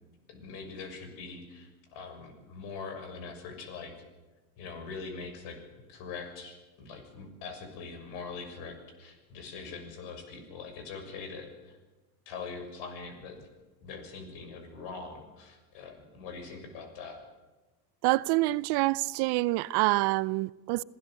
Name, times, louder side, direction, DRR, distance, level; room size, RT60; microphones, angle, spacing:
voice 1, 0.3-3.9 4.6-5.6 5.9-11.8 12.2-13.5 13.8-17.2, left 4 dB, 70° left, 6.8 m, -43 dB
voice 2, 18.0-20.8, right 20 dB, 60° right, 0.8 m, -26 dB
26.5 x 16.0 x 7.8 m
supercardioid pair, 95°, 45 cm